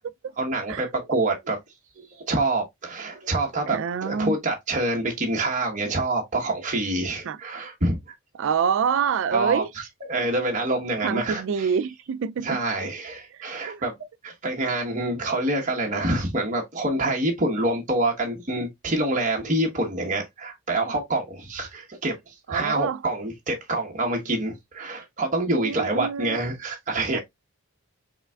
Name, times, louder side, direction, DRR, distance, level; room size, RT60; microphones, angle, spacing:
voice 1, 0.4-1.6 2.0-8.0 9.3-11.7 12.4-13.9 14.2-27.2, right 2 dB, 35° right, 1.1 m, -26 dB
voice 2, 3.7-4.3 7.3-7.4 8.3-9.7 11.0-12.6 13.3-13.8 22.5-23.0 25.5-26.4 27.1-27.2, right 6 dB, 55° right, 0.3 m, -26 dB
5.6 x 3.3 x 2.3 m
head